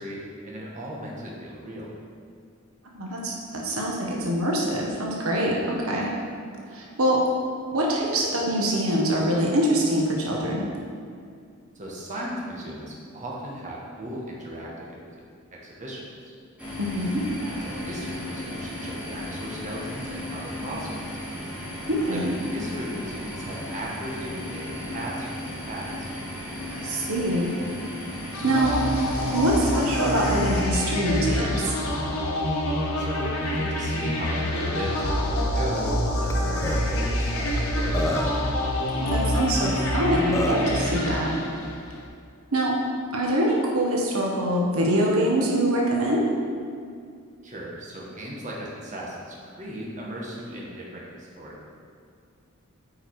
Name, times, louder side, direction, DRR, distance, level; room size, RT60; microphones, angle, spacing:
voice 1, 0.0-1.9 11.7-15.2 15.5-16.0 17.4-21.2 22.0-26.1 33.0-38.3 47.4-51.5, equal, 35° right, -4 dB, 1.5 m, -37 dB
voice 2, 2.9-6.1 6.7-7.2 7.7-10.6 16.8-17.2 21.9-22.3 26.7-27.6 28.1-28.8 29.3-31.7 39.0-41.3 42.5-42.8 43.1-46.2, right 1 dB, 75° right, -2 dB, 1.2 m, -24 dB
sound 1, 16.6-30.6, left 1 dB, 5° right, 1.9 m, -35 dB
sound 2, 28.3-42.0, left 1 dB, 90° left, 1.3 m, -26 dB
Burping eructation, 36.3-36.4 36.6-36.8 37.6-37.7 37.9-38.5 39.8-39.9 40.3-40.7, left 1 dB, 15° left, 0.6 m, -28 dB
8.8 x 5.0 x 4.8 m, 2.3 s
head